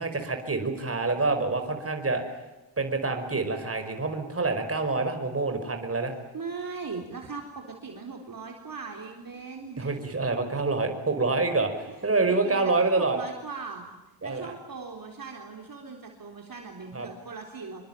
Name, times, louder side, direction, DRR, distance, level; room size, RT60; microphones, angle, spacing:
voice 1, 0.0-2.2 2.8-6.1 9.8-13.2 14.2-14.5 16.9-17.1, right 3 dB, 30° right, 6 dB, 5.2 m, -27 dB
voice 2, 6.3-9.9 12.2-13.9 14.2-17.8, right 4 dB, 45° right, 2 dB, 3.9 m, -39 dB
27.0 x 24.5 x 9.1 m, 1.0 s
wide cardioid pair, 140°, 46 cm